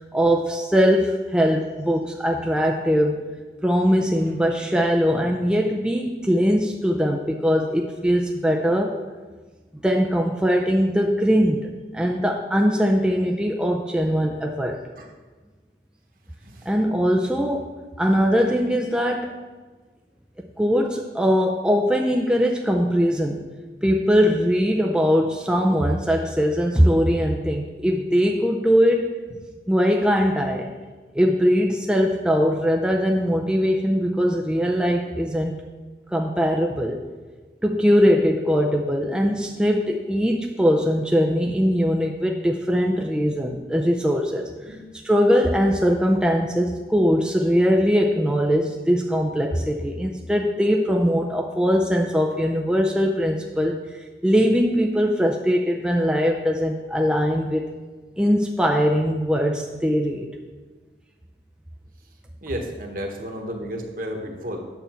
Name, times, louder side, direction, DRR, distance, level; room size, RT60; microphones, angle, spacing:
voice 1, 0.1-3.2 3.6-9.0 9.8-14.8 16.7-17.7 18.0-19.3 20.4-23.4 23.8-29.1 29.7-30.7 31.1-35.6 36.1-37.0 37.6-44.8 45.0-53.8 54.2-57.7 58.2-60.3, equal, 5° right, 1 dB, 0.4 m, -21 dB
voice 2, 62.4-64.6, equal, 50° right, 2 dB, 1.3 m, -32 dB
9.2 x 6.8 x 4.4 m, 1.3 s
head